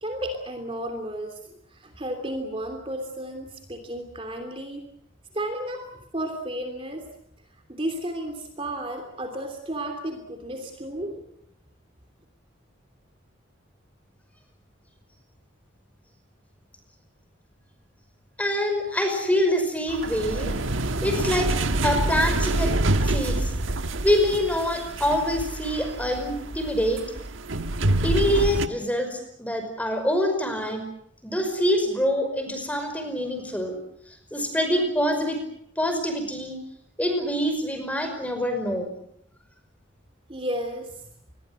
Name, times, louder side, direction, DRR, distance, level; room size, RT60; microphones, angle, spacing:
voice 1, 0.0-4.9 5.3-7.1 7.7-11.3 40.3-40.9, right 1 dB, 30° right, 5 dB, 3.1 m, -33 dB
voice 2, 18.4-20.6 21.0-21.6 21.8-22.7 23.0-23.5 24.0-27.0 28.0-30.8 31.2-33.7 34.3-35.4 35.8-36.6 37.0-38.9, equal, 5° left, 6 dB, 5.4 m, -25 dB
sound 1, 19.9-28.7, right 2 dB, 80° right, 1.4 m, -26 dB
27.0 x 22.0 x 7.7 m, 0.74 s
head